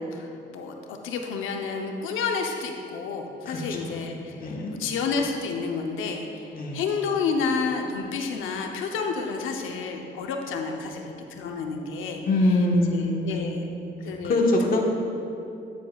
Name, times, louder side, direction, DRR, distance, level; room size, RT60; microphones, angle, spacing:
voice 1, 0.0-12.2 12.5-13.6 14.0-14.4, left 5 dB, 85° left, 3 dB, 0.8 m, -30 dB
voice 2, 4.4-4.7 6.5-6.8 12.3-13.8 14.2-14.8, left 1 dB, 45° left, -1 dB, 1.3 m, -24 dB
10.5 x 9.2 x 2.4 m, 2.7 s
cardioid pair, 90°, 20 cm